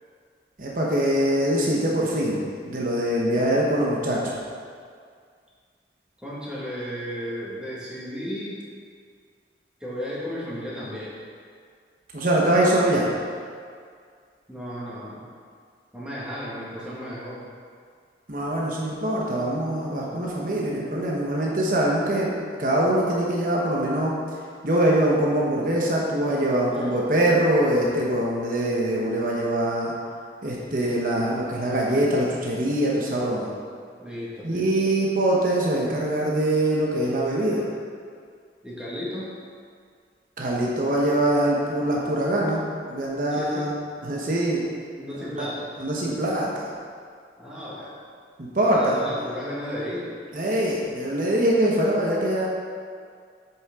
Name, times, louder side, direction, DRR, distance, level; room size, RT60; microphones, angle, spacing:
voice 1, 0.6-2.4 2.7-4.4 12.1-13.1 18.3-22.3 22.6-24.1 24.6-29.9 30.4-33.5 34.4-37.6 40.4-43.7 44.0-44.6 45.4-45.5 45.8-46.7 48.4-49.0 50.3-52.5, right 1 dB, 50° right, -4 dB, 1.1 m, -23 dB
voice 2, 6.2-8.6 9.8-11.1 14.5-15.3 15.9-17.4 26.7-26.9 34.0-34.7 38.6-39.4 43.3-43.7 45.0-45.7 47.4-47.9 48.6-50.1, equal, 5° right, -8 dB, 1.7 m, -34 dB
7.8 x 6.2 x 3.7 m, 2.1 s
head